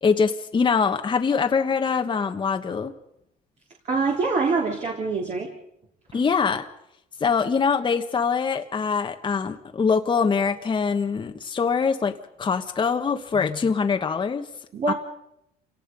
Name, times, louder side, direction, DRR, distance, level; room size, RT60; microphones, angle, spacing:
voice 1, 0.0-2.9 6.1-6.7 7.2-14.5 14.9-15.0, left 5 dB, 30° left, 5 dB, 1.3 m, -23 dB
voice 2, 3.9-5.6 6.1-6.2 14.7-14.9, right 4 dB, 45° right, 0 dB, 3.5 m, -25 dB
28.0 x 18.0 x 5.4 m, 0.78 s
cardioid pair, 110°, 17 cm